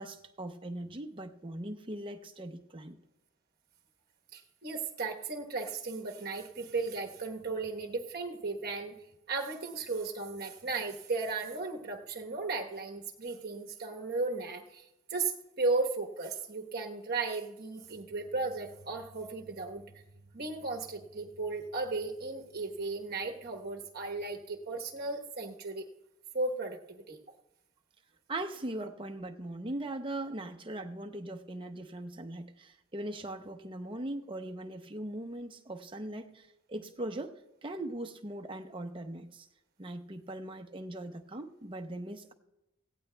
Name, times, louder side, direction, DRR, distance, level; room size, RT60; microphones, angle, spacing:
voice 1, 0.0-3.0 28.3-37.3 37.6-39.5 39.8-42.3, right 1 dB, 25° right, 6 dB, 0.7 m, -40 dB
voice 2, 4.3-8.9 9.3-19.9 20.3-25.9 26.3-27.2, right 3 dB, 45° right, 3 dB, 1.1 m, -35 dB
17.5 x 16.0 x 2.2 m, 0.92 s
head